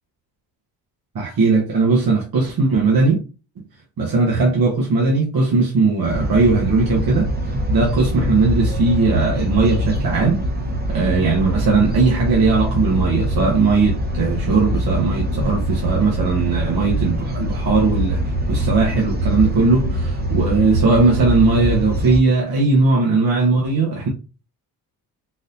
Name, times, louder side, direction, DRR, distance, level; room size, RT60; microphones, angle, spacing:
voice 1, 1.1-3.2 4.0-10.4 10.9-24.1, right 3 dB, 50° right, 1.2 m, -18 dB
sound 1, 6.1-22.2, equal, 20° right, 1.0 m, -23 dB
4.0 x 2.6 x 2.5 m
supercardioid pair, 70°, 46 cm